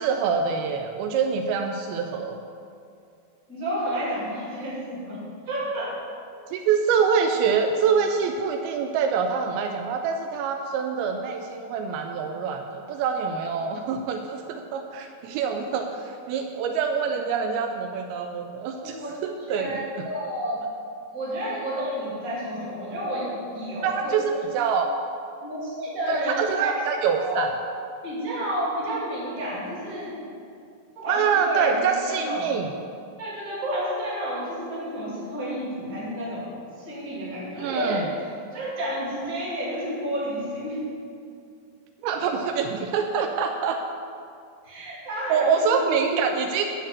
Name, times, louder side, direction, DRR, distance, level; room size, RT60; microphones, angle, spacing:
voice 1, 0.0-2.4 6.5-19.0 19.2-20.1 23.8-24.9 26.1-27.5 31.1-32.7 37.6-38.1 42.0-43.8 45.3-46.6, right 6 dB, 85° right, 4 dB, 2.4 m, -25 dB
voice 2, 3.5-5.2 5.5-5.9 18.8-19.1 19.5-20.6 21.1-24.5 25.4-27.4 28.0-30.2 31.0-32.5 33.2-36.5 36.8-38.1 38.5-40.8 44.6-46.3, equal, 25° right, -7 dB, 2.4 m, -30 dB
11.0 x 4.0 x 7.4 m, 2.4 s
omnidirectional pair, 4.4 m